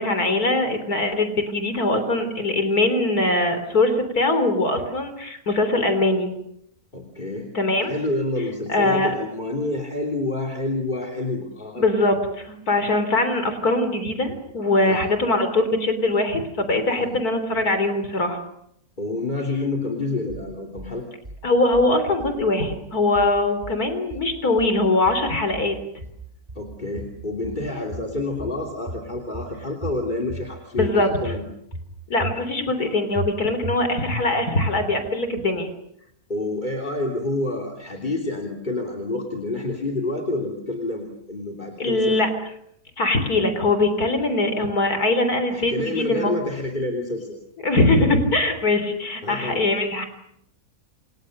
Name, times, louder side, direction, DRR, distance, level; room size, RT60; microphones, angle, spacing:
voice 1, 0.0-6.3 7.5-7.9 8.7-9.1 11.7-18.4 21.4-25.8 30.8-31.3 32.1-35.7 41.8-42.3 43.0-46.4 47.6-50.0, left 2 dB, 80° left, 9 dB, 4.1 m, -22 dB
voice 2, 6.9-7.5 7.8-11.8 14.9-15.0 16.9-17.1 19.0-21.0 26.5-31.4 36.3-42.2 45.5-47.4 49.2-49.6, left 2 dB, 30° left, 4 dB, 3.3 m, -28 dB
sound 1, 20.3-20.9 21.2-21.9 22.2-22.9 23.1-23.8 24.1-24.8 25.0-25.7 26.0-26.7 27.0-27.6 27.9-28.6 28.9-29.5 29.8-30.5 30.8-31.4 31.7-32.4 32.7-32.8 33.1-33.8 34.1-34.2 34.6-35.1, right 1 dB, 30° right, 4.3 m, -34 dB
29.0 x 28.5 x 6.6 m, 0.74 s
omnidirectional pair, 1.6 m